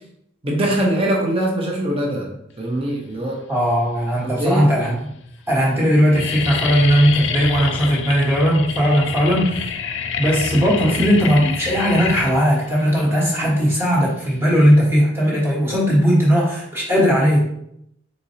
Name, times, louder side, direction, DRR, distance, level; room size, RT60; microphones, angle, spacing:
voice 1, 0.4-2.3 2.6-3.4 4.2-4.7, right 1 dB, 25° right, 0 dB, 0.7 m, -22 dB
sound 1, 3.5-4.1 4.8-4.9 5.1-5.5 5.8-14.7, left 6 dB, 55° left, 0.4 m, -28 dB
voice 2, 3.5-5.1 5.5-9.7 10.2-17.4, equal, 10° right, -6 dB, 1.3 m, -17 dB
4.2 x 4.1 x 2.8 m, 0.76 s
head